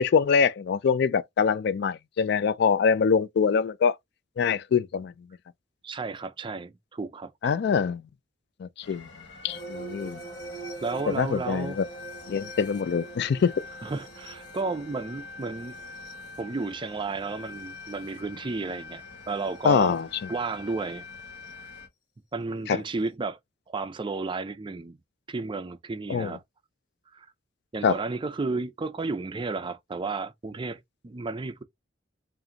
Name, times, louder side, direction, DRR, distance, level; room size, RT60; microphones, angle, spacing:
voice 1, 0.0-4.0 4.4-5.1 7.4-8.0 8.6-9.1 9.4-10.2 11.1-11.8 12.3-13.5 19.6-20.1 22.7-22.8 26.1-26.4 27.8-28.0, left 6 dB, 60° left, 0.3 m, -24 dB
voice 2, 5.8-7.5 10.8-11.8 13.8-15.8 16.4-20.0 20.3-21.1 21.6-21.7 22.3-23.4 23.7-25.0 25.3-26.4 27.1-27.3 27.7-31.6, right 3 dB, 25° right, 0.4 m, -33 dB
sound 1, 8.8-21.9, left 3 dB, 85° left, 1.5 m, -45 dB
sound 2, 9.5-18.2 19.5-19.7 21.4-21.5, right 3 dB, 25° left, 1.1 m, -44 dB
4.9 x 2.5 x 2.8 m
head